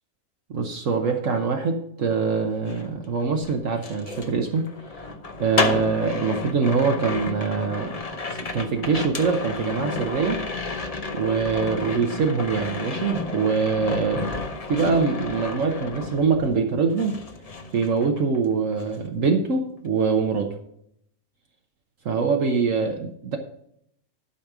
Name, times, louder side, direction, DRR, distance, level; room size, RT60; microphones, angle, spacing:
voice 1, 0.5-4.7 5.4-8.0 8.5-10.4 11.1-14.4 14.7-17.1 17.7-20.6 22.0-23.4, right 5 dB, 60° right, 3 dB, 1.3 m, -24 dB
sound 1, 2.5-16.7 17.0-18.5 18.7-19.1, left 3 dB, 35° left, 0.7 m, -32 dB
11.5 x 5.2 x 6.0 m, 0.71 s
omnidirectional pair, 1.6 m